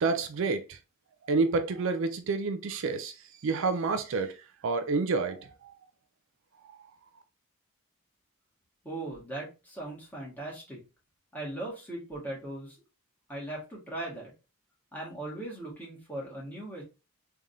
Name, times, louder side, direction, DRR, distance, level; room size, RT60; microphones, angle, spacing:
voice 1, 0.0-0.8 1.2-3.1 3.4-4.3 4.6-5.7, right 4 dB, 60° right, 0.4 m, -28 dB
voice 2, 8.8-10.8 11.3-12.8 13.3-14.3 14.9-16.8, right 1 dB, 10° left, 1.6 m, -39 dB
3.6 x 3.3 x 2.6 m
head